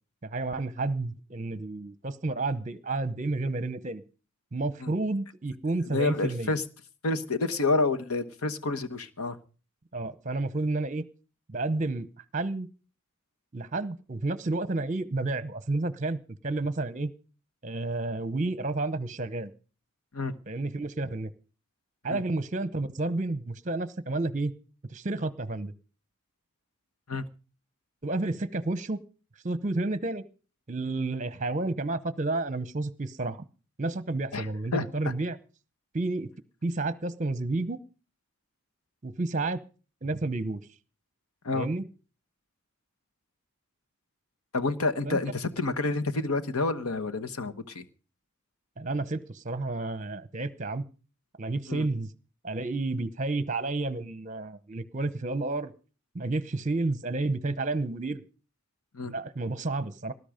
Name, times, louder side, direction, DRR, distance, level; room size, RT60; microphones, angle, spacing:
voice 1, 0.2-4.0 4.5-6.5 9.9-11.0 11.5-12.7 13.5-17.1 17.6-19.5 20.5-21.3 22.0-24.5 24.9-25.7 28.0-29.0 29.4-30.2 30.7-33.4 33.8-35.4 35.9-36.3 36.6-37.8 39.0-39.6 40.0-40.6 41.5-41.8 45.0-45.2 48.8-50.8 51.4-52.1 52.4-55.7 56.1-58.2 59.0-60.1, right 2 dB, 35° right, 15 dB, 0.8 m, -31 dB
voice 2, 5.8-6.6 7.0-9.4 20.1-20.4 22.1-22.2 27.1-27.2 34.3-34.5 34.7-34.8 41.4-41.7 44.5-47.8 51.7-51.8 58.9-59.1, left 3 dB, 85° left, 10 dB, 1.3 m, -29 dB
19.0 x 11.0 x 5.1 m, 0.37 s
head